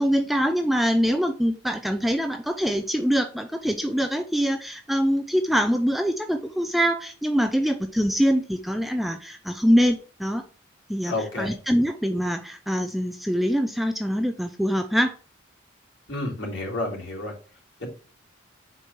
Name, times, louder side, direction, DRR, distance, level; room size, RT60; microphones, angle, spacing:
voice 1, 0.0-10.4 10.9-15.2, equal, ahead, 6 dB, 0.5 m, -24 dB
voice 2, 11.1-11.5 16.1-17.3 17.8-17.9, left 2 dB, 75° left, -4 dB, 3.6 m, -30 dB
6.6 x 4.7 x 5.9 m, 0.37 s
head